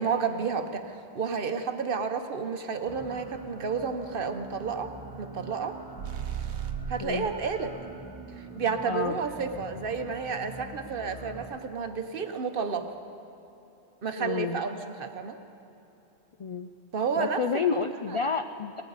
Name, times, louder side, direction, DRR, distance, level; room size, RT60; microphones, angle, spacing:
voice 1, 0.0-5.8 6.9-7.8 8.4-12.9 14.0-15.4 16.9-17.6 18.1-18.2, right 5 dB, 55° right, 7 dB, 1.0 m, -31 dB
sound 1, 2.9-11.4, right 2 dB, 20° left, 1.9 m, -44 dB
sound 2, 6.0-7.2, right 9 dB, 85° right, 1.1 m, -34 dB
voice 2, 7.0-7.3 8.9-9.2 14.2-14.6 16.4-16.7 17.2-18.8, left 5 dB, 55° left, 8 dB, 0.3 m, -30 dB
19.0 x 18.0 x 4.0 m, 3.0 s
omnidirectional pair, 1.1 m